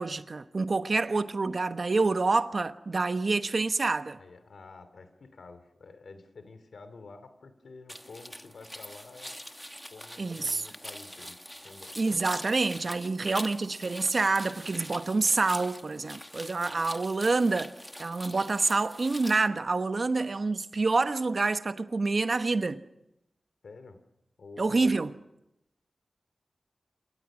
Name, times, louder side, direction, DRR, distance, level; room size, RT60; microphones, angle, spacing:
voice 1, 0.0-4.2 10.2-10.6 12.0-17.7 18.0-22.8 24.6-25.1, right 3 dB, 55° right, 1.1 m, -27 dB
voice 2, 4.2-9.4 9.9-12.2 23.6-24.0 24.4-25.0, left 3 dB, 85° left, 2.6 m, -49 dB
sound 1, 7.9-19.4, equal, 5° left, 1.2 m, -43 dB
28.0 x 24.5 x 6.2 m
wide cardioid pair, 85°, 0 cm